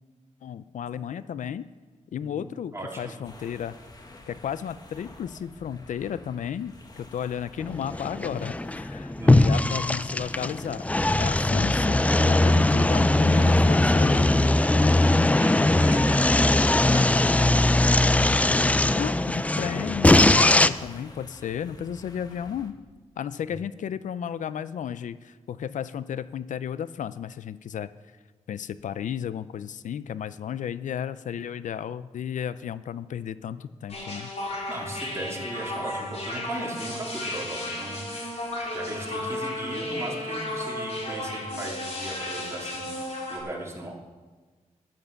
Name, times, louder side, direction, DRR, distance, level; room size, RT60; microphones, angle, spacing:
voice 1, 0.4-1.6 2.1-3.7 4.3-10.8 11.2-14.3 18.9-22.8 23.2-27.9 28.5-34.3, left 8 dB, 85° left, 15 dB, 0.4 m, -33 dB
voice 2, 2.2-3.1 9.2-9.4 15.2-16.3 16.7-17.7 23.4-23.5 34.7-38.1 38.7-42.9 43.3-44.1, right 1 dB, 20° right, -3 dB, 3.2 m, -37 dB
sound 1, 3.2-22.7, left 2 dB, 30° left, 1.5 m, -49 dB
sound 2, 7.6-20.7, left 2 dB, 10° left, 0.4 m, -20 dB
sound 3, 33.9-43.4, left 1 dB, 60° left, 3.8 m, -33 dB
10.5 x 10.5 x 7.0 m, 1.4 s
wide cardioid pair, 115°, 13 cm